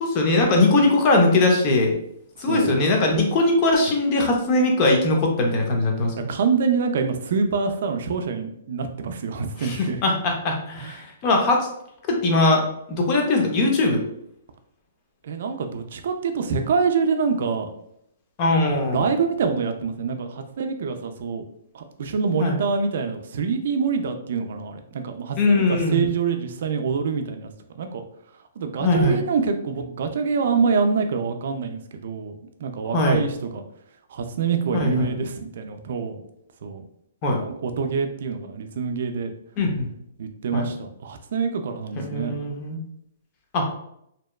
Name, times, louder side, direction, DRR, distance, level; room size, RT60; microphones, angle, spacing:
voice 1, 0.0-1.9 2.4-6.3 9.6-11.7 12.1-12.6 12.9-14.0 18.4-19.1 22.4-22.6 25.4-26.1 28.8-29.2 32.9-33.2 34.7-35.1 37.2-37.4 39.6-39.9 40.5-40.7 42.0-42.8 43.5-43.7, left 2 dB, 30° left, 1 dB, 0.6 m, -20 dB
voice 2, 6.3-10.0 10.8-10.9 15.2-17.7 18.9-21.4 21.7-28.0 28.6-33.6 34.1-36.2 36.6-36.8 37.4-39.3 40.2-42.3, right 5 dB, 65° right, 6 dB, 0.4 m, -26 dB
2.7 x 2.1 x 2.2 m, 0.75 s
hypercardioid pair, 150°, 0 cm